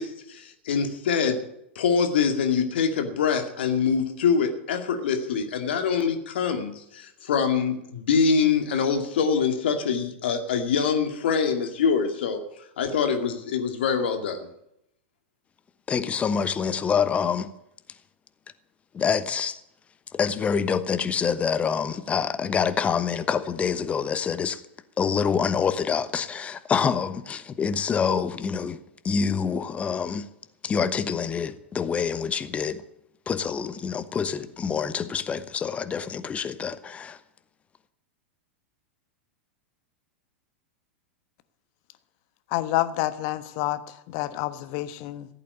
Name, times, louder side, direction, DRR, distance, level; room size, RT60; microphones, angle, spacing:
voice 1, 0.0-1.4 1.8-12.4 12.8-14.5, left 6 dB, 60° left, 2.3 m, -24 dB
voice 2, 15.9-17.5 18.9-19.6 20.1-24.6 25.0-28.8 29.0-30.3 30.6-32.8 33.3-37.2, left 6 dB, 20° left, 1.1 m, -26 dB
voice 3, 42.5-45.3, left 15 dB, 45° left, 1.2 m, -28 dB
15.5 x 8.6 x 9.7 m
figure-of-eight pair, 95°, 6 cm